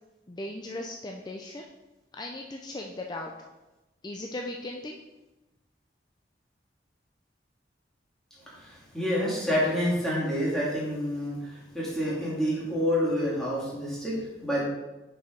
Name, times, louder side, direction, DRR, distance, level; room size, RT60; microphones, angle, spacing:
voice 1, 0.3-1.7 2.1-3.3 4.0-5.0, left 1 dB, 25° left, 1 dB, 0.4 m, -37 dB
voice 2, 8.6-14.7, equal, 5° left, -7 dB, 2.1 m, -28 dB
5.4 x 4.8 x 5.1 m, 1.0 s
head